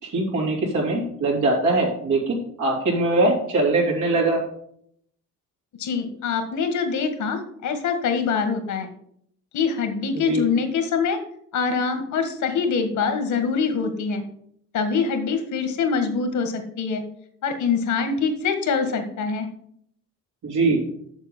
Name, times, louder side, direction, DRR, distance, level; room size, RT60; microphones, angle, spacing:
voice 1, 0.0-4.4 10.1-10.4 20.4-20.8, right 2 dB, 80° right, -2 dB, 3.2 m, -22 dB
voice 2, 5.8-8.9 9.5-11.2 11.5-14.2 14.7-17.0 17.4-19.5, left 5 dB, 75° left, 7 dB, 1.8 m, -24 dB
7.4 x 6.9 x 5.4 m, 0.68 s
cardioid pair, 90°, 30 cm